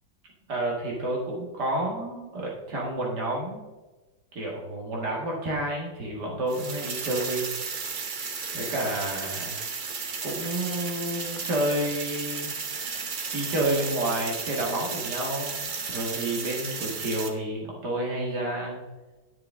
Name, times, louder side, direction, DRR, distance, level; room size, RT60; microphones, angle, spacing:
voice 1, 0.5-3.6 4.3-7.5 7.7-7.9 8.5-9.6 10.2-12.5 12.9-18.8, right 1 dB, 60° right, -2 dB, 2.2 m, -30 dB
sound 1, 6.5-17.3, right 5 dB, 80° right, 0.4 m, -34 dB
9.7 x 7.6 x 3.6 m, 1.2 s
omnidirectional pair, 2.1 m